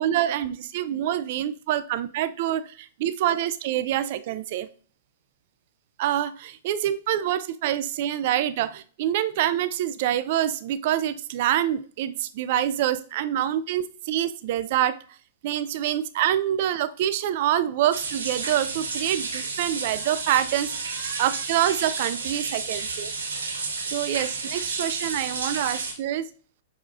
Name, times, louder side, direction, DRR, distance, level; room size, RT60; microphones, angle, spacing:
voice 1, 0.0-4.7 6.0-15.0 15.4-23.1 23.9-26.3, right 11 dB, 50° right, 14 dB, 0.3 m, -26 dB
sound 1, 17.9-25.9, right 4 dB, 75° right, 1.1 m, -31 dB
6.2 x 2.4 x 2.7 m, 0.41 s
figure-of-eight pair, 105°, 0 cm